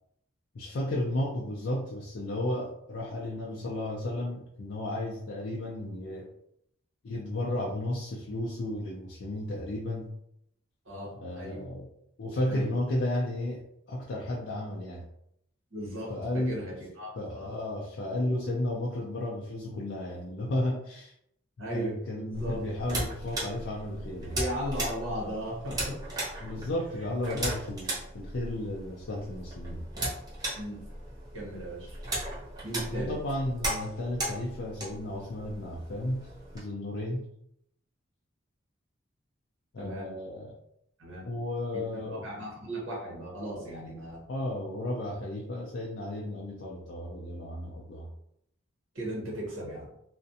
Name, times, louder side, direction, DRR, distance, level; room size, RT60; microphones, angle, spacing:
voice 1, 0.5-6.3 7.0-10.2 11.2-11.9 12.2-13.6 13.9-15.1 16.1-16.6 17.1-21.1 21.7-24.4 26.4-29.9 32.9-36.3 36.5-37.3 39.7-40.6 41.3-42.3 44.3-48.1, left 1 dB, 55° left, -3 dB, 0.4 m, -33 dB
voice 2, 10.8-11.6 12.5-12.7 15.7-17.5 21.6-22.6 24.3-26.0 27.3-27.5 30.6-30.8 31.3-32.0 32.6-33.2 39.7-40.1 41.0-41.3 41.9-44.2 48.9-49.9, equal, 70° right, -3 dB, 1.0 m, -37 dB
sound 1, 22.3-36.6, right 1 dB, 20° right, 0.6 m, -37 dB
2.4 x 2.1 x 2.7 m, 0.75 s
head